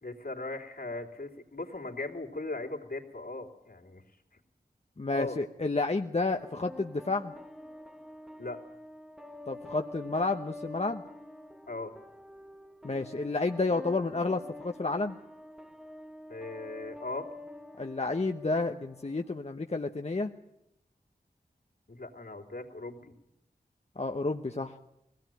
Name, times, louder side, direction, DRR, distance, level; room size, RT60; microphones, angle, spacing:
voice 1, 0.0-4.0 5.1-5.4 8.4-8.6 11.7-11.9 16.3-17.3 21.9-23.1, left 2 dB, 70° left, 1 dB, 3.2 m, -38 dB
voice 2, 5.0-7.3 9.5-11.0 12.8-15.2 17.8-20.3 24.0-24.7, left 3 dB, 40° left, 5 dB, 1.0 m, -30 dB
sound 1, 6.4-19.4, left 1 dB, 5° right, 1.0 m, -47 dB
20.5 x 17.0 x 9.2 m, 0.81 s
wide cardioid pair, 45°, 16 cm